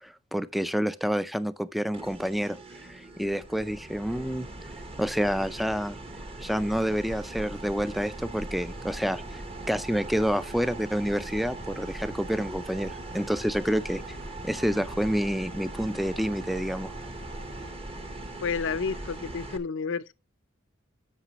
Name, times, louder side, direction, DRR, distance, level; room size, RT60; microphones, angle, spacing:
voice 1, 0.0-2.6 2.9-4.5 5.0-6.0 6.4-9.4 9.7-14.0 14.4-16.9, equal, ahead, 0.4 m, -28 dB
sound 1, 1.9-19.6, right 1 dB, 30° right, 1.0 m, -40 dB
sound 2, 6.6-17.7, right 3 dB, 45° right, 2.9 m, -46 dB
voice 2, 18.4-20.1, left 5 dB, 65° left, 0.6 m, -30 dB
13.0 x 5.9 x 2.9 m
head